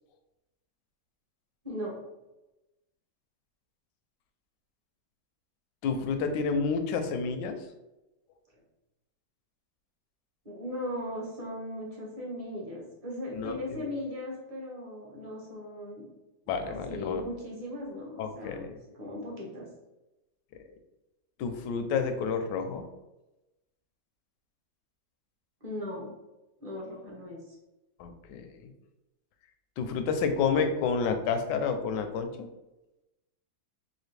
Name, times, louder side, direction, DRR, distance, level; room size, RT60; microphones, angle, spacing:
voice 1, 1.6-2.0 10.4-16.1 16.6-19.7 25.6-26.1 26.6-27.5, left 1 dB, 25° right, -3 dB, 0.8 m, -38 dB
voice 2, 5.8-7.6 13.4-13.9 16.5-17.2 18.2-18.7 21.4-22.8 28.0-28.7 29.8-32.5, left 5 dB, 80° left, 7 dB, 1.2 m, -30 dB
4.2 x 2.6 x 3.2 m, 0.98 s
omnidirectional pair, 1.9 m